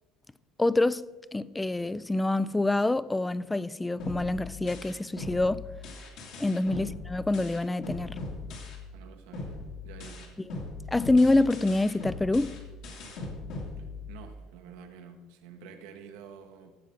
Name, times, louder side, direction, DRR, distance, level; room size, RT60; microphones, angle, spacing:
voice 1, 0.6-1.0 1.3-5.7 6.4-8.2 10.9-12.6, left 2 dB, 10° left, 0.3 m, -26 dB
sound 1, 4.0-9.0 9.3-14.4, left 3 dB, 70° left, 2.6 m, -40 dB
voice 2, 8.9-10.4 13.8-16.7, right 6 dB, 85° right, 1.2 m, -49 dB
15.5 x 7.4 x 3.7 m
cardioid pair, 115°, 0 cm